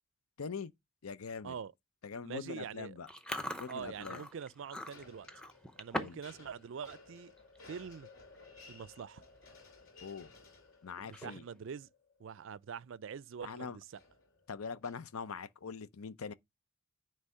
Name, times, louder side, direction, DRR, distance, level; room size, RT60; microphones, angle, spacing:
voice 1, 0.4-0.7 1.0-1.5 2.0-3.1 3.6-4.2 6.0-6.2 10.0-10.3 10.8-11.4 13.4-13.8 14.5-16.3, left 5 dB, 85° left, 0.6 m, -42 dB
voice 2, 2.2-3.0 3.7-5.3 5.8-7.3 7.7-8.1 8.7-9.2 11.0-11.9 12.2-14.0, right 7 dB, 60° right, 0.4 m, -44 dB
Chewing mastication, 3.1-6.3 6.6-6.9 7.4-7.6 8.4-8.5 8.7-9.0 9.4-9.5 11.0-11.6, left 1 dB, 5° left, 0.7 m, -42 dB
sound 1, 3.3-13.1 13.9-15.1, left 3 dB, 65° left, 2.7 m, -58 dB
9.7 x 3.3 x 5.5 m
head